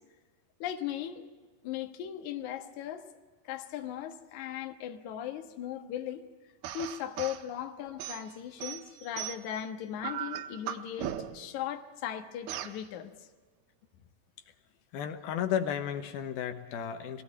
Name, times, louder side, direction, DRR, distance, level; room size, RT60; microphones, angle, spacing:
voice 1, 0.6-1.2 1.6-3.1 3.4-6.2 6.7-13.1, left 10 dB, 60° left, 4 dB, 2.5 m, -38 dB
sound 1, 6.6-7.4 8.0-9.6 10.0-11.5 12.5-12.8, right 11 dB, 90° right, 2.7 m, -38 dB
voice 2, 14.9-17.2, left 9 dB, 80° left, 6 dB, 3.0 m, -33 dB
21.5 x 16.0 x 8.6 m, 1.4 s
omnidirectional pair, 4.3 m